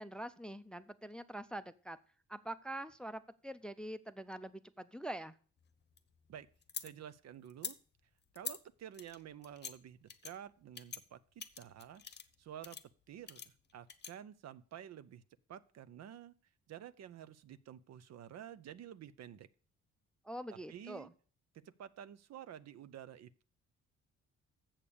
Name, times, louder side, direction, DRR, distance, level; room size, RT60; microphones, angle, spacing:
voice 1, 0.0-2.0 2.3-5.4 20.2-21.1, right 1 dB, 5° left, 13 dB, 0.5 m, -44 dB
sound 1, 5.6-6.9 7.5-7.7 8.3-8.6 8.9-9.7 10.1-10.3 10.7-11.0 11.4-12.3 12.6-12.8 13.3-14.1, left 7 dB, 35° left, 0.9 m, -45 dB
voice 2, 6.8-7.8 8.3-12.0 12.4-12.8 13.1-15.2 15.5-16.3 16.7-19.5 20.5-21.1 21.5-23.4, right 10 dB, 60° right, 15 dB, 0.6 m, -51 dB
7.3 x 6.8 x 6.9 m, 0.41 s
cardioid pair, 90°, 30 cm